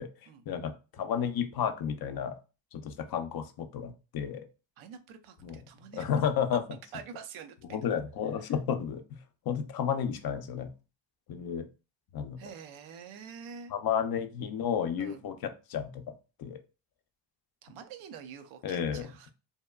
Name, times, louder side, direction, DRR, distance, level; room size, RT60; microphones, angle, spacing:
voice 1, 0.5-2.4 2.7-4.4 5.4-5.6 5.9-6.6 7.7-9.2 9.5-10.7 11.3-11.7 12.1-12.4 13.7-16.6 18.6-19.1, left 8 dB, 50° left, 7 dB, 0.5 m, -32 dB
voice 2, 4.8-6.1 6.9-7.9 12.4-13.7 15.0-15.2 17.6-19.3, right 7 dB, 75° right, 8 dB, 0.6 m, -46 dB
2.8 x 2.2 x 2.2 m, 0.31 s
supercardioid pair, 70°, 49 cm